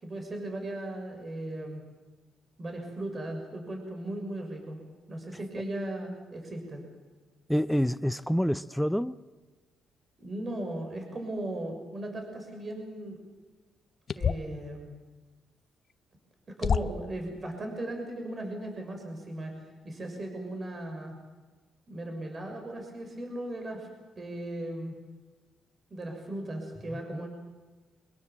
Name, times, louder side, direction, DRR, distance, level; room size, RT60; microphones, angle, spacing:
voice 1, 0.0-1.8 2.6-4.8 5.1-6.8 10.2-13.2 14.1-15.0 16.6-21.2 21.9-23.9 24.2-24.9 25.9-27.3, right 1 dB, 35° right, 3 dB, 6.2 m, -37 dB
voice 2, 7.5-9.2 26.9-27.3, equal, ahead, 12 dB, 0.6 m, -28 dB
sound 1, 14.1-14.6 15.9-16.0 16.6-17.1, left 6 dB, 50° left, 1.0 m, -28 dB
24.5 x 21.5 x 7.5 m, 1.3 s
cardioid pair, 90°, 0 cm